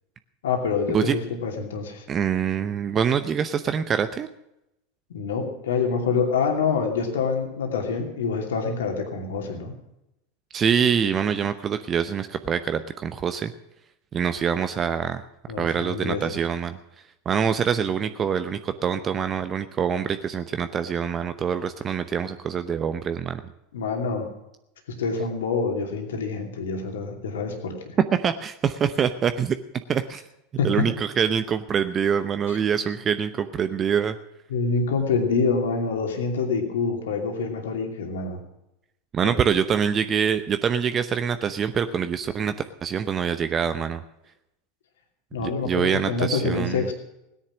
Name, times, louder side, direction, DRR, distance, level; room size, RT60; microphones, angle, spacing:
voice 1, 0.4-2.0 5.1-9.7 15.5-16.2 23.7-24.3 25.0-27.9 30.6-30.9 34.5-38.4 39.2-39.3 45.3-46.9, left 5 dB, 70° left, 3 dB, 2.6 m, -26 dB
voice 2, 2.1-4.3 10.5-13.5 14.1-15.2 15.6-16.8 17.2-23.4 28.2-29.6 29.9-30.2 30.6-34.2 39.1-42.5 42.8-44.0 45.4-46.9, right 7 dB, 30° right, 10 dB, 0.8 m, -25 dB
17.0 x 10.0 x 6.2 m, 0.86 s
figure-of-eight pair, 85°, 0 cm